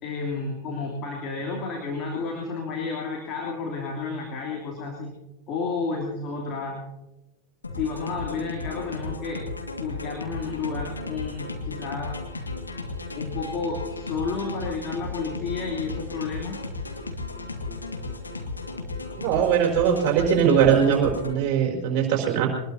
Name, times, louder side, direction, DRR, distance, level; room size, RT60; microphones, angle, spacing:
voice 1, 0.0-5.1 5.5-6.8 7.7-9.4 9.8-12.2 13.1-16.6, left 4 dB, 35° left, -2 dB, 3.2 m, -31 dB
sound 1, 7.6-21.4, left 3 dB, 80° left, 1.8 m, -35 dB
voice 2, 19.2-22.5, right 8 dB, 40° right, -1 dB, 4.8 m, -21 dB
23.5 x 20.5 x 2.8 m, 1.0 s
figure-of-eight pair, 90°, 0 cm